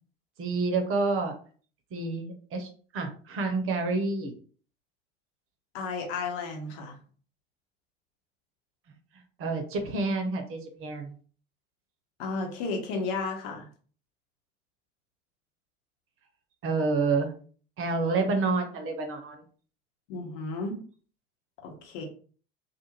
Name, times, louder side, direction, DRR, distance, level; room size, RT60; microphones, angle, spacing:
voice 1, 0.4-1.3 1.9-4.3 9.4-11.1 16.6-17.3 17.8-19.4, right 3 dB, 40° right, 4 dB, 0.8 m, -28 dB
voice 2, 5.7-7.0 12.2-13.7 20.1-20.8 21.6-22.0, left 3 dB, 65° left, 2 dB, 1.0 m, -33 dB
2.5 x 2.5 x 3.0 m, 0.42 s
figure-of-eight pair, 70°, 32 cm